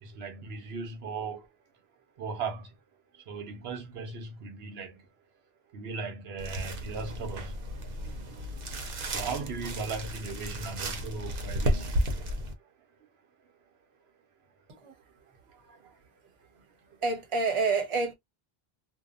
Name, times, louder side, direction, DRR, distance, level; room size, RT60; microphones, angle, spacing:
voice 1, 0.0-1.5 2.2-2.7 3.3-5.0 5.7-7.6 9.0-12.0 15.5-16.0, right 4 dB, 85° right, 0.9 m, -37 dB
sound 1, 6.4-12.5, equal, 65° right, 0.9 m, -33 dB
voice 2, 17.0-18.1, right 4 dB, 35° right, 0.8 m, -28 dB
2.7 x 2.2 x 2.3 m
omnidirectional pair, 1.0 m